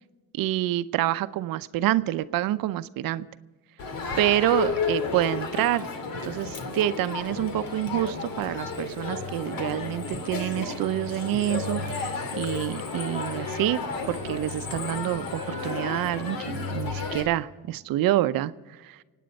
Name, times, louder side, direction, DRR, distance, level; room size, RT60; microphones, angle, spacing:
voice 1, 0.3-3.3 4.2-5.9 6.2-13.8 14.1-19.0, right 13 dB, 80° right, 14 dB, 0.7 m, -27 dB
Crowd, 3.8-17.2, left 4 dB, 80° left, 2.5 m, -32 dB
26.5 x 9.3 x 5.2 m, 1.3 s
cardioid pair, 120°, 34 cm